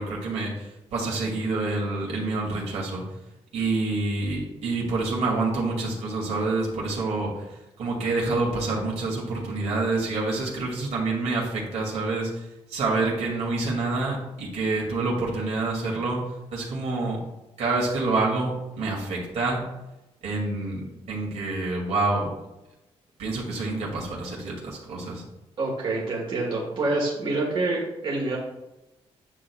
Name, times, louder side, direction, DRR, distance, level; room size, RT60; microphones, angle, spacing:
voice 1, 0.0-3.0 3.5-7.5 7.8-16.2 16.5-17.2 17.6-19.6 20.2-22.3 23.2-25.2, right 3 dB, 80° right, -2 dB, 2.5 m, -27 dB
voice 2, 25.6-28.4, right 2 dB, 50° right, -3 dB, 1.7 m, -27 dB
9.7 x 6.6 x 2.4 m, 0.95 s
wide cardioid pair, 160°, 11 cm